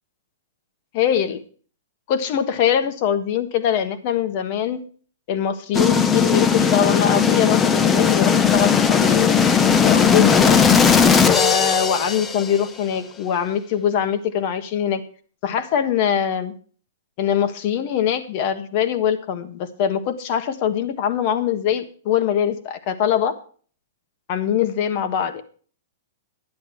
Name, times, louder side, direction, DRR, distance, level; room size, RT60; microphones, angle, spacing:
voice 1, 0.9-1.4 2.1-4.8 5.3-9.2 9.8-10.9 11.3-15.0 15.4-16.5 17.2-23.3 24.3-25.4, left 9 dB, 40° left, 11 dB, 1.4 m, -22 dB
sound 1, 5.7-12.6, left 6 dB, 15° left, 0.6 m, -17 dB
11.0 x 10.5 x 4.5 m, 0.42 s
hypercardioid pair, 160°, 0 cm